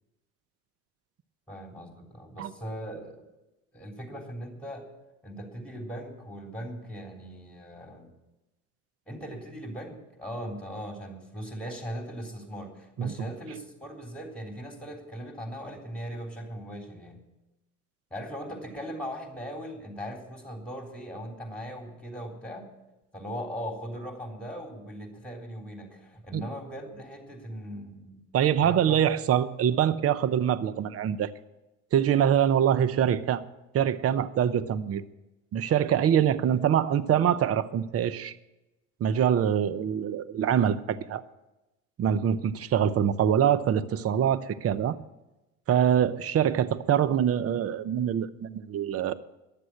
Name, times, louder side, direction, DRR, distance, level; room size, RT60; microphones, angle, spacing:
voice 1, 1.5-3.2 3.7-4.9 5.2-8.1 9.1-17.2 18.1-22.7 23.1-28.2 28.6-29.1, equal, 5° left, 2 dB, 3.5 m, -39 dB
voice 2, 28.3-31.3 31.9-33.4 33.7-35.0 35.5-38.3 39.0-41.2 42.0-45.0 45.7-49.1, right 9 dB, 40° right, 15 dB, 0.7 m, -24 dB
11.5 x 7.6 x 9.7 m, 0.99 s
supercardioid pair, 85°, 37 cm